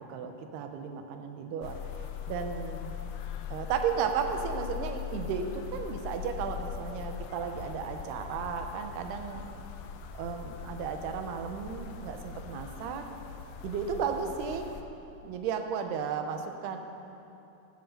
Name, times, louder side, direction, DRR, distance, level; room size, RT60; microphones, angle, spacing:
voice 1, 0.1-1.8 2.3-2.9 3.5-9.5 10.1-13.1 13.6-14.7 15.2-16.8, right 6 dB, 90° right, 5 dB, 3.0 m, -34 dB
sound 1, 1.6-14.8, left 9 dB, 80° left, 2.6 m, -41 dB
14.0 x 12.0 x 6.5 m, 3.0 s
omnidirectional pair, 4.6 m